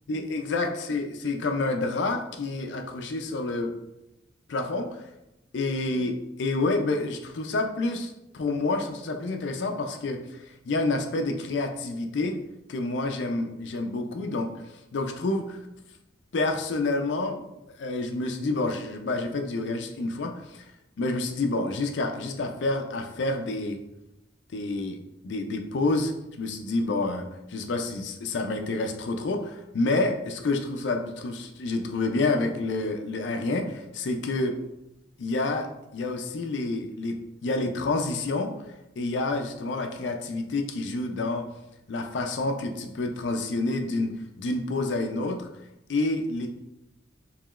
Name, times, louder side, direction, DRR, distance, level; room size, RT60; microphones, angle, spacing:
voice 1, 0.1-3.7 4.5-5.0 5.5-12.4 12.7-14.5 14.9-15.6 16.3-17.4 17.8-20.7 21.0-23.8 24.5-25.0 25.2-34.6 35.2-38.5 39.0-41.5 41.9-44.1 44.4-45.5 45.9-46.5, left 2 dB, 70° left, 5 dB, 0.4 m, -28 dB
4.8 x 3.0 x 2.4 m, 0.90 s
head